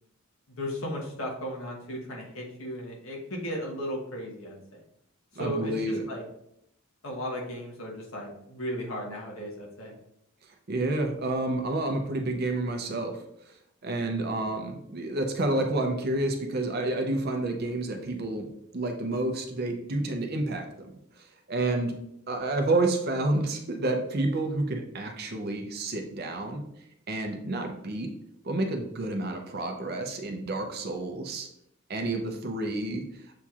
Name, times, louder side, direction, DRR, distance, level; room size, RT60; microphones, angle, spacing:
voice 1, 0.5-4.8 5.3-6.2 7.0-10.0, equal, 70° left, -1 dB, 1.1 m, -35 dB
voice 2, 5.4-6.0 10.7-13.2 13.8-18.5 18.7-20.9 21.5-22.0 22.3-26.6 27.1-28.1 28.4-31.5 31.9-33.3, right 2 dB, 45° right, 4 dB, 0.5 m, -29 dB
7.0 x 2.9 x 2.4 m, 0.78 s
head